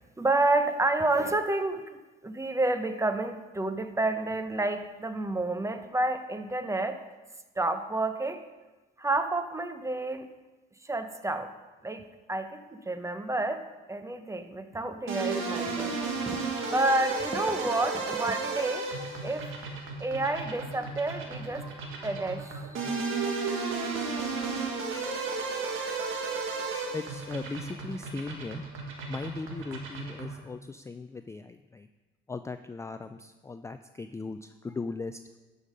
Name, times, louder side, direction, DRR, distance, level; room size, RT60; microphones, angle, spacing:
voice 1, 0.2-1.8 2.2-7.0 7.6-8.4 9.0-10.3 10.8-11.5 11.8-12.0 12.3-13.6 13.9-18.9 19.2-19.6 20.0-22.9, right 2 dB, 15° right, 9 dB, 0.8 m, -30 dB
sound 1, 15.1-30.4, right 4 dB, 85° right, 1.6 m, -34 dB
voice 2, 26.9-28.6 29.1-31.9 32.3-35.2, left 3 dB, 15° left, 9 dB, 0.3 m, -38 dB
11.5 x 5.5 x 5.1 m, 1.2 s
cardioid pair, 90°, 20 cm